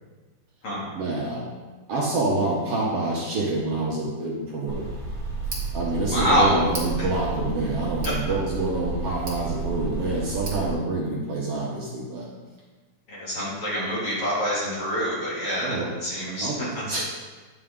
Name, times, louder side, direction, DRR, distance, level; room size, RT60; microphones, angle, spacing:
voice 1, 0.9-1.5 1.9-4.9 5.7-12.3 15.6-15.9 16.4-17.0, right 2 dB, 60° right, -4 dB, 1.8 m, -27 dB
Tick, 4.7-10.7, right 3 dB, 35° right, 1.9 m, -32 dB
voice 2, 6.1-6.6 13.1-16.5, equal, 45° left, -8 dB, 3.5 m, -25 dB
9.9 x 6.1 x 3.8 m, 1.3 s
omnidirectional pair, 3.5 m